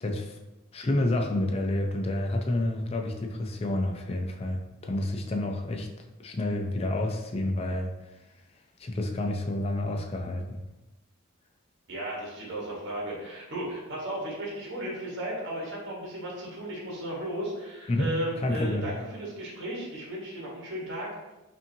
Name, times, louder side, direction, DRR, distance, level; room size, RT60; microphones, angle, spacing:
voice 1, 0.0-0.4 0.7-5.9 6.2-7.9 8.8-10.6 17.9-18.1 18.4-18.8, left 1 dB, 30° left, 2 dB, 0.4 m, -29 dB
voice 2, 11.9-21.1, right 1 dB, 55° right, -4 dB, 1.2 m, -35 dB
5.3 x 2.7 x 2.7 m, 1.0 s
head